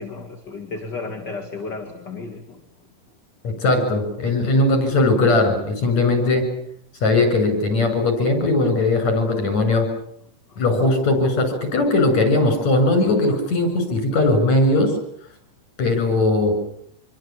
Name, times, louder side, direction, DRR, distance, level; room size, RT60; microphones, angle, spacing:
voice 1, 0.0-2.6, left 3 dB, 35° left, 4 dB, 3.0 m, -33 dB
voice 2, 3.4-6.5 7.0-9.9 10.6-15.0 15.8-16.6, left 2 dB, 60° left, 7 dB, 8.0 m, -19 dB
26.5 x 23.5 x 8.6 m, 0.68 s
omnidirectional pair, 3.6 m